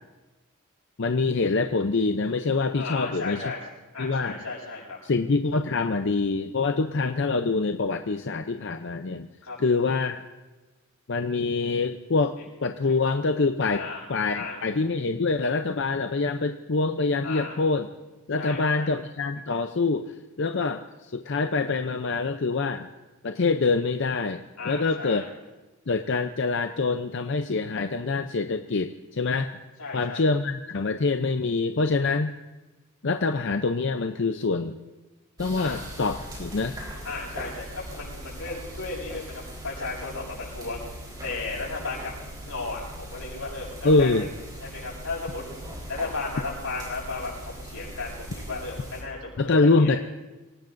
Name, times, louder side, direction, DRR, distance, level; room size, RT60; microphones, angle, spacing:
voice 1, 1.0-3.4 4.0-4.4 5.0-9.3 9.6-10.2 11.1-13.8 14.1-17.9 18.3-22.9 23.2-25.3 25.9-29.5 29.9-32.3 33.0-34.8 35.4-36.8 43.8-44.3 49.4-50.0, left 3 dB, 55° left, 7 dB, 0.6 m, -25 dB
voice 2, 2.7-3.6 3.9-5.0 9.4-9.6 12.8-12.9 13.7-14.1 14.3-14.6 17.2-17.5 18.4-18.9 24.6-25.3 29.8-30.2 35.6-35.8 37.0-40.9 41.2-44.1 44.6-45.5 45.9-50.0, left 3 dB, 90° left, -4 dB, 7.1 m, -35 dB
sound 1, 35.4-49.0, right 1 dB, 20° right, 4.1 m, -40 dB
27.0 x 18.0 x 2.6 m, 1.1 s
head